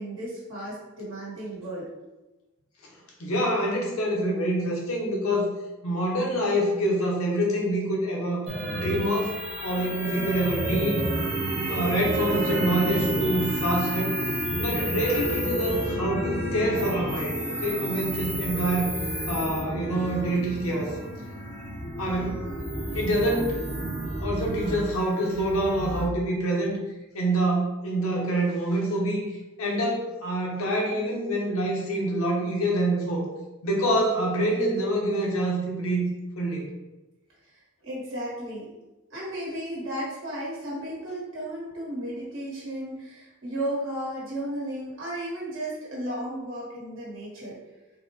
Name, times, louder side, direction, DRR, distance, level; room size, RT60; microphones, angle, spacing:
voice 1, 0.0-1.9 37.4-38.7 39.1-47.6, right 1 dB, 65° right, -6 dB, 1.3 m, -34 dB
voice 2, 3.2-5.5 5.8-8.4 8.7-9.4 9.6-11.0 11.6-14.2 14.6-18.9 19.3-21.0 22.0-22.4 22.9-23.6 24.2-26.8 27.1-29.2 29.6-33.2 33.6-36.0 36.4-36.7, right 1 dB, 85° left, -1 dB, 0.8 m, -26 dB
sound 1, 8.5-26.1, right 1 dB, 30° right, 0.9 m, -30 dB
3.8 x 2.1 x 2.9 m, 1.1 s
head